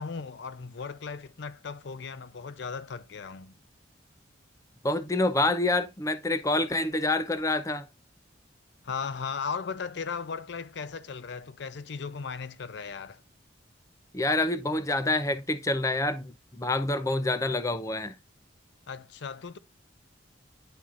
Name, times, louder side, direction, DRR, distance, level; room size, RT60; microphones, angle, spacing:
voice 1, 0.0-3.6 8.8-13.2 18.9-19.6, left 5 dB, 65° left, 0.5 m, -37 dB
voice 2, 4.8-7.9 14.1-18.2, left 2 dB, 15° left, 0.6 m, -27 dB
10.5 x 4.3 x 2.5 m
head